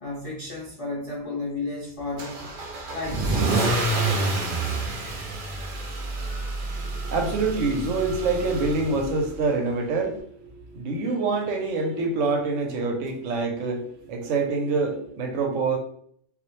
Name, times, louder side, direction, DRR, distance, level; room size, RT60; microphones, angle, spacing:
voice 1, 0.0-2.5 2.9-4.5, left 3 dB, 60° left, -5 dB, 0.3 m, -34 dB
Car / Engine starting / Accelerating revving vroom, 2.2-9.3, right 2 dB, 55° right, 0.6 m, -28 dB
voice 2, 6.8-15.8, right 3 dB, 80° right, 3 dB, 0.9 m, -26 dB
2.3 x 2.0 x 2.9 m, 0.66 s
omnidirectional pair, 1.3 m